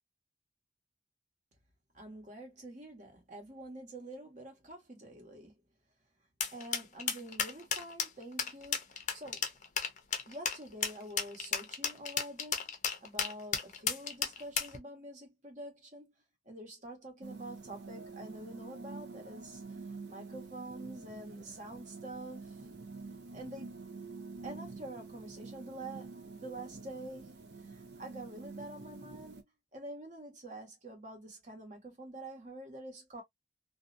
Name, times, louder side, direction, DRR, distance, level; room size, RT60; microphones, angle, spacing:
voice 1, 1.9-5.5 6.5-9.5 10.2-12.8 13.0-16.1 16.4-19.6 20.1-22.6 23.3-23.8 24.4-29.4 29.7-33.2, right 1 dB, 45° right, 1.2 m, -47 dB
sound 1, 6.4-14.8, left 7 dB, 45° left, 0.6 m, -33 dB
sound 2, 17.2-29.4, right 4 dB, 70° right, 0.5 m, -47 dB
2.6 x 2.1 x 2.5 m
head